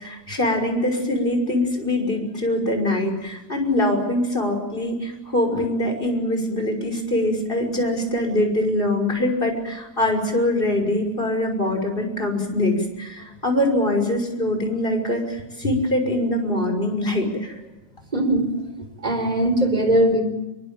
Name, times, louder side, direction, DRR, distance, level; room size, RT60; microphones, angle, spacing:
voice 1, 0.0-17.5, left 1 dB, 15° left, 3 dB, 5.8 m, -23 dB
voice 2, 18.1-18.5 19.0-20.2, right 1 dB, 15° right, 7 dB, 4.2 m, -20 dB
25.0 x 23.5 x 8.9 m, 1.0 s
omnidirectional pair, 3.4 m